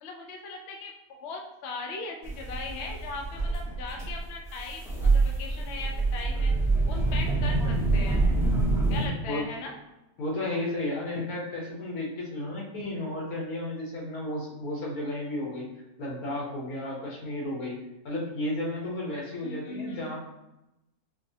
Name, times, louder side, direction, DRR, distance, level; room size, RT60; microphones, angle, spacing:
voice 1, 0.0-6.5 6.9-8.2 8.9-9.7 19.4-20.2, left 3 dB, 65° left, 2 dB, 0.7 m, -39 dB
sound 1, 2.2-9.1, right 3 dB, 5° right, 0.3 m, -26 dB
voice 2, 10.2-15.7 16.0-17.8 18.0-20.2, left 1 dB, 85° left, -4 dB, 1.5 m, -33 dB
5.1 x 2.1 x 2.7 m, 0.94 s
omnidirectional pair, 1.5 m